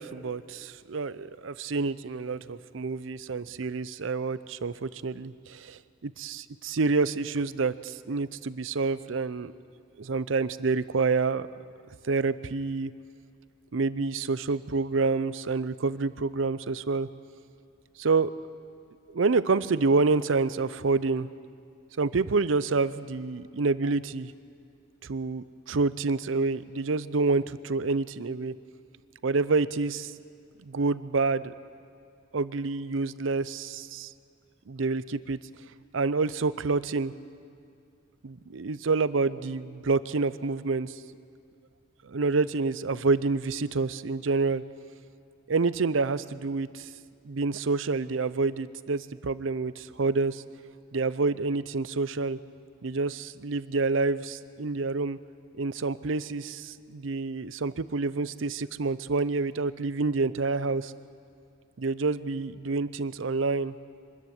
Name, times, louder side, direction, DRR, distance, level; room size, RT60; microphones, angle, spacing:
voice 1, 0.0-9.5 10.0-11.5 12.0-12.9 13.7-17.1 18.0-18.3 19.1-21.3 22.0-24.3 25.0-28.5 29.2-30.1 30.6-31.5 32.3-34.1 34.7-35.4 35.9-37.1 38.2-40.9 42.0-44.6 45.5-46.9 47.2-50.4 50.9-52.4 52.8-55.2 55.6-60.9 61.8-63.7, right 3 dB, 70° right, 16 dB, 0.6 m, -28 dB
24.0 x 13.5 x 9.4 m, 2.4 s
head